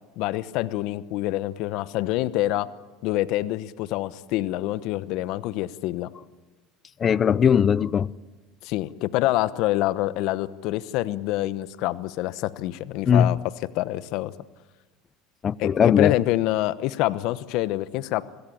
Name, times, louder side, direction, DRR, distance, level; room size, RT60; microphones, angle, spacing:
voice 1, 0.2-2.7 3.0-6.1 8.6-13.4 13.7-14.3 15.6-18.2, left 16 dB, 65° left, 1.0 m, -26 dB
voice 2, 7.0-8.1 13.1-13.4 15.4-16.2, left 8 dB, 35° left, 0.6 m, -19 dB
26.5 x 17.0 x 8.7 m
supercardioid pair, 100°, 0 cm